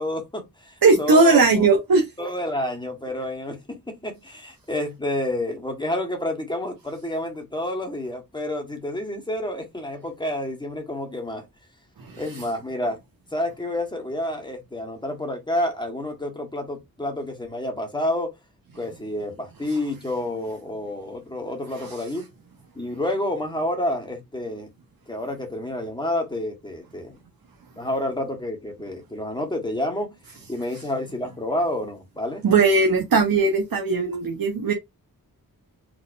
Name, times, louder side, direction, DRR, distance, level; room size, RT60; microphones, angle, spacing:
voice 1, 0.0-1.7 2.2-11.5 12.1-13.0 13.3-18.3 18.7-22.2 22.7-24.7 25.1-27.2 27.7-30.2 30.5-32.4, left 1 dB, 10° left, 1.4 m, -29 dB
voice 2, 0.8-2.1 12.0-12.2 21.8-22.0 32.4-34.7, right 3 dB, 70° right, 1.1 m, -18 dB
4.6 x 3.7 x 2.6 m
wide cardioid pair, 115°, 36 cm